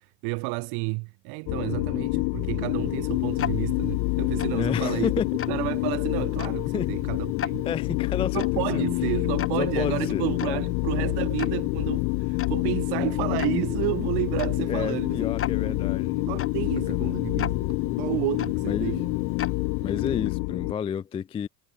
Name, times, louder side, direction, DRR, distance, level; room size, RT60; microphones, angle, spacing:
voice 1, 0.0-5.1 5.5-7.7 8.3-15.3 15.6-15.9 16.1-19.1, right 30 dB, 60° right, 1.1 m, -31 dB
sound 1, 1.5-20.7, left 40 dB or more, 70° left, 1.1 m, -27 dB
Tick-tock, 2.1-20.4, left 9 dB, 30° left, 3.5 m, -38 dB
voice 2, 4.5-5.3 6.7-6.9 7.6-8.8 9.6-10.6 14.7-16.2 16.9-17.2 18.6-19.0 19.8-21.5, left 7 dB, 15° left, 0.3 m, -31 dB
cardioid pair, 150°, 44 cm